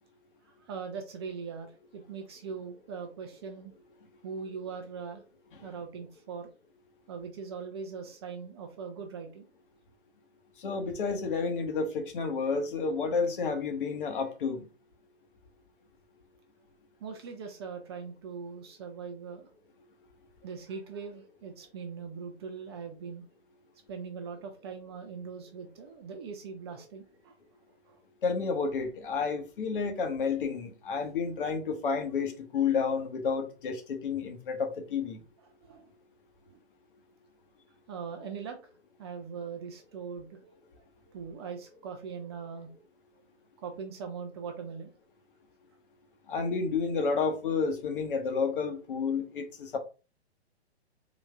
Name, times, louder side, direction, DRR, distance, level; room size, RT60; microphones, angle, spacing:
voice 1, 0.5-3.7 4.2-5.2 5.6-6.5 7.1-9.5 17.0-19.5 20.4-23.2 23.9-27.4 27.7-28.0 35.6-35.9 36.5-36.6 37.9-38.7 39.0-42.7 43.6-44.9, right 5 dB, 25° right, 0.5 m, -41 dB
voice 2, 10.6-14.6 28.2-35.2 46.3-49.8, left 5 dB, 50° left, 1.1 m, -30 dB
3.9 x 2.6 x 3.4 m
figure-of-eight pair, 125°, 33 cm